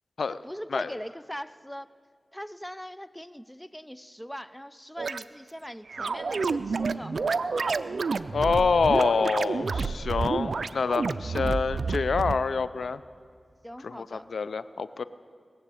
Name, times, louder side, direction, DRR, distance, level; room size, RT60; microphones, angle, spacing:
voice 1, 0.4-1.9 2.3-7.2 8.7-9.4 13.6-14.3, equal, 5° left, 15 dB, 0.5 m, -41 dB
sound 1, 5.0-5.2 5.9-12.4, right 4 dB, 80° right, 0.4 m, -29 dB
voice 2, 8.3-13.0 13.8-15.0, left 5 dB, 90° left, 15 dB, 0.4 m, -26 dB
20.0 x 7.4 x 8.3 m, 2.2 s
cardioid pair, 40°, 0 cm